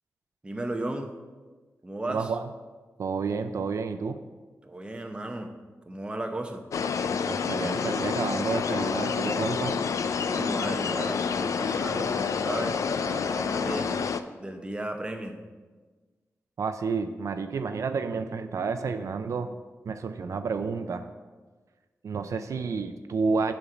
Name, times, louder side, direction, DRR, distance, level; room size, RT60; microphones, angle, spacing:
voice 1, 0.4-1.1 1.8-2.3 4.6-5.5 5.9-6.6 10.2-14.1 14.4-15.4, right 1 dB, 20° right, 4 dB, 0.7 m, -35 dB
voice 2, 2.1-2.5 3.0-4.2 7.3-9.8 16.6-19.5 19.9-21.1 22.0-23.5, right 5 dB, 75° right, 8 dB, 0.4 m, -30 dB
sound 1, 6.7-14.2, left 6 dB, 85° left, 0.4 m, -28 dB
7.0 x 5.3 x 5.8 m, 1.3 s
wide cardioid pair, 140°, 5 cm